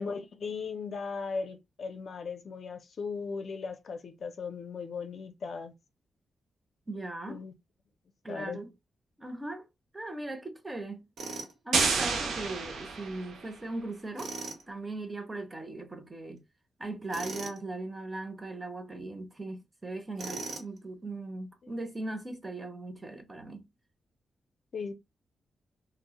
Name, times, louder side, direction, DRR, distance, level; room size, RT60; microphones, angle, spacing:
voice 1, 0.0-5.7 7.3-7.5 8.3-8.6 24.7-24.9, left 5 dB, 60° left, 0.4 m, -37 dB
voice 2, 6.9-7.4 8.2-8.7 9.2-9.7 9.9-11.1 11.6-14.3 14.7-16.4 16.8-23.7, right 2 dB, 20° right, 0.6 m, -39 dB
Tools, 11.2-11.5 14.1-14.6 17.1-17.6 20.2-20.8, right 3 dB, 70° right, 0.9 m, -39 dB
sound 1, 11.7-13.5, right 5 dB, 85° right, 0.5 m, -29 dB
2.1 x 2.0 x 2.9 m
cardioid pair, 100°, 0 cm